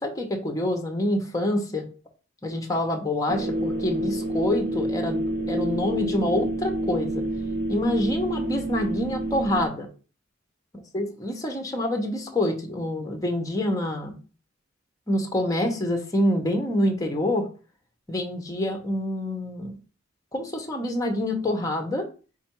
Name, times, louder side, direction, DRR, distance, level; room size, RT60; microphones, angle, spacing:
voice 1, 0.0-1.9 2.4-5.2 5.5-7.3 7.7-9.9 10.9-14.1 15.1-17.5 18.1-19.7 20.3-22.1, left 1 dB, 15° left, 3 dB, 0.8 m, -26 dB
sound 1, 3.3-9.7, right 1 dB, 50° right, 0.7 m, -28 dB
4.4 x 2.5 x 4.4 m, 0.35 s
head